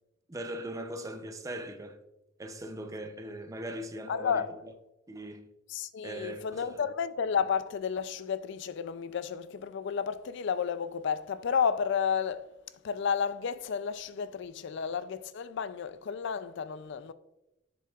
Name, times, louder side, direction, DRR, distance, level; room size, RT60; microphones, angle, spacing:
voice 1, 0.3-2.0 2.4-4.7 5.1-5.5 6.0-6.6, right 1 dB, 15° right, 0.5 m, -40 dB
voice 2, 4.1-4.5 5.7-12.5 12.8-17.1, left 7 dB, 65° left, 0.4 m, -32 dB
7.4 x 7.0 x 2.4 m
head